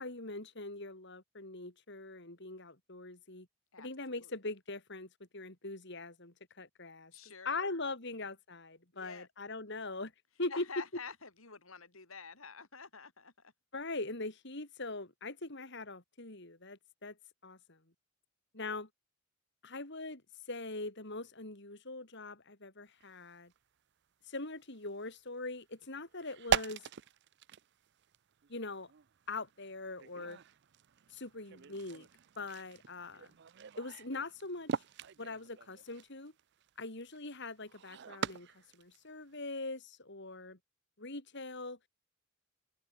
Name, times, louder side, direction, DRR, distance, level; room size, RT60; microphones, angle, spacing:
voice 1, 0.0-3.5 3.8-7.1 7.4-10.1 10.4-10.7 13.7-17.2 17.4-17.8 18.5-18.9 19.6-20.2 20.5-23.5 24.3-26.8 28.5-28.9 29.3-30.4 31.1-32.1 32.4-33.3 33.8-34.7 35.2-36.3 36.8-38.5 38.7-40.6 41.0-41.8, left 2 dB, 55° left, 3.9 m, -42 dB
voice 2, 7.1-7.8 8.9-9.3 10.5-13.5, left 5 dB, 75° left, 4.9 m, -48 dB
sound 1, 23.0-23.2 23.5-23.6 24.6-24.8 25.0-25.4 26.1-39.4, right 7 dB, 55° right, 0.5 m, -41 dB
head